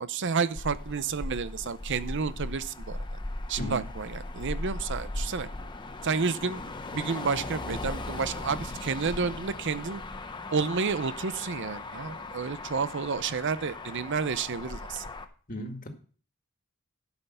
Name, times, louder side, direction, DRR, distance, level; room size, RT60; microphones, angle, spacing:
voice 1, 0.0-3.0 3.5-5.5 6.0-6.6 6.9-10.0 10.5-15.0, right 5 dB, 55° right, 15 dB, 0.6 m, -30 dB
Motor vehicle (road), 0.6-15.2, left 2 dB, 20° left, 0.8 m, -38 dB
voice 2, 15.5-15.9, equal, 40° left, 4 dB, 1.9 m, -35 dB
11.5 x 5.6 x 6.7 m, 0.41 s
head